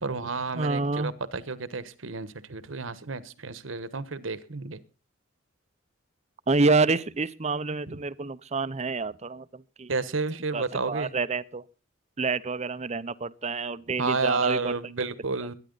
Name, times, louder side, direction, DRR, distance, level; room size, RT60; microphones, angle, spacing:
voice 1, 0.0-4.8 7.9-8.0 9.9-11.1 14.0-15.5, right 3 dB, 75° right, 1.2 m, -31 dB
voice 2, 0.5-1.1 6.5-9.9 10.5-11.6 12.2-14.7 15.4-15.5, right 3 dB, 35° right, 0.6 m, -28 dB
22.0 x 10.0 x 4.0 m
head